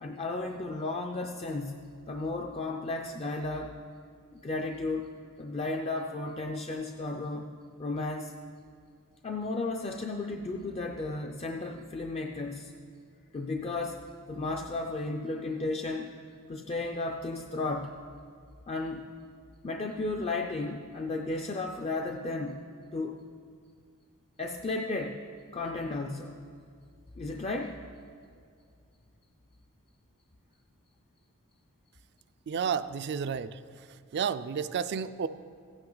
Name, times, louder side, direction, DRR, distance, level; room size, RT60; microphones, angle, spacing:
voice 1, 0.0-3.7 4.3-5.1 5.4-7.5 7.8-8.3 9.2-12.7 13.3-14.0 14.3-16.1 16.5-18.0 18.7-19.1 19.6-22.6 22.9-23.2 24.4-25.2 25.5-26.3 27.2-27.8, left 2 dB, 30° left, 3 dB, 0.4 m, -34 dB
voice 2, 32.5-33.6 34.1-35.3, right 7 dB, 50° right, 13 dB, 0.4 m, -31 dB
16.0 x 8.8 x 3.9 m, 2.2 s
head